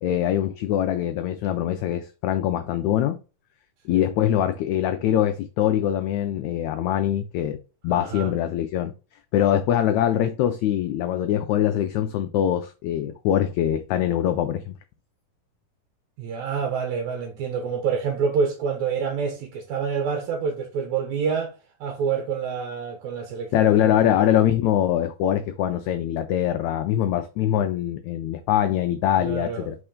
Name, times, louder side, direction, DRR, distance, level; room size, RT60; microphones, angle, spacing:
voice 1, 0.0-3.2 3.8-7.6 7.8-8.9 9.3-14.7 23.5-29.8, left 11 dB, 85° left, 1.6 m, -23 dB
voice 2, 7.9-8.3 16.2-21.5 21.8-24.3 29.2-29.7, right 6 dB, 70° right, 1.9 m, -27 dB
4.5 x 4.4 x 5.0 m
omnidirectional pair, 3.9 m